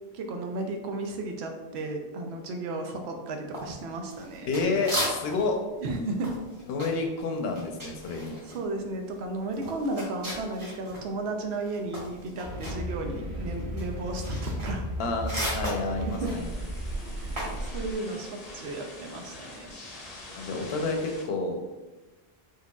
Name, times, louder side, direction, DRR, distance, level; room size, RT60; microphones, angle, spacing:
voice 1, 0.1-4.5 5.8-6.3 8.5-14.8 16.2-16.3 17.2-19.9, right 2 dB, 90° right, 4 dB, 0.8 m, -34 dB
sound 1, 3.5-5.5 5.8-11.1 11.4-17.6, equal, 30° right, 1.1 m, -36 dB
voice 2, 4.5-5.6 6.7-8.4 15.0-16.5 20.3-21.6, left 3 dB, 75° left, 3 dB, 0.8 m, -29 dB
sound 2, 12.4-17.9, equal, 70° right, 1.8 m, -35 dB
sound 3, 16.2-21.3, left 2 dB, 45° left, 0.6 m, -45 dB
4.6 x 2.5 x 2.2 m, 1.1 s
omnidirectional pair, 1.0 m